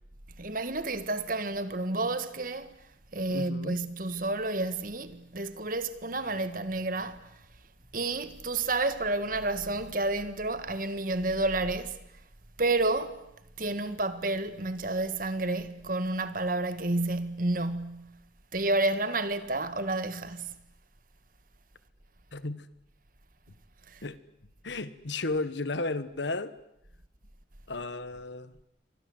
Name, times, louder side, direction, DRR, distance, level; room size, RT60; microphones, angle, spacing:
voice 1, 0.4-2.8 3.1-7.4 7.9-12.0 12.6-13.2 13.6-18.2 18.5-20.5 23.9-24.0, right 2 dB, 45° right, 1.8 m, -30 dB
voice 2, 3.3-3.8 22.3-22.7 24.0-24.2 24.6-26.5 27.7-28.5, left 3 dB, 75° left, 1.4 m, -34 dB
29.0 x 25.0 x 8.0 m
head